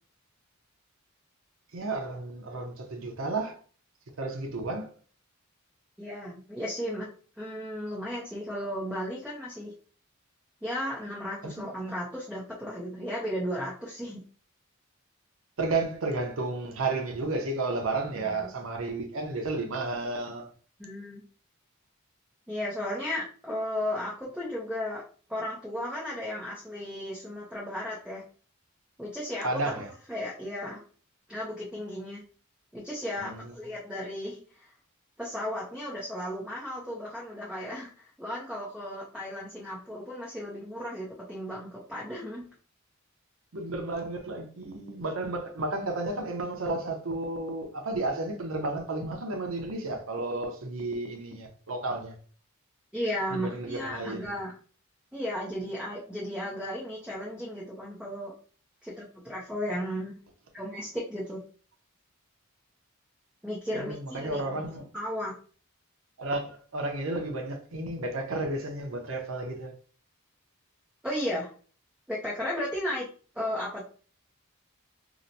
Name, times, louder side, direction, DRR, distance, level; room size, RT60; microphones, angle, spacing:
voice 1, 1.7-3.6 4.2-4.9 11.6-11.7 15.6-20.5 29.4-29.9 33.2-33.5 43.5-52.2 53.3-54.3 63.7-64.8 66.2-69.7, right 2 dB, 70° right, 0.7 m, -32 dB
voice 2, 6.0-7.1 7.4-9.7 10.6-14.2 18.2-18.5 20.8-21.2 22.5-25.0 25.3-28.2 29.0-29.8 30.1-30.8 31.3-32.2 32.7-34.7 35.2-42.5 52.9-54.5 55.1-58.3 58.8-60.2 60.5-61.4 63.4-64.6 64.9-65.3 71.0-71.5 72.1-73.1 73.3-73.9, left 1 dB, 5° right, 0.6 m, -35 dB
2.9 x 2.1 x 3.9 m
head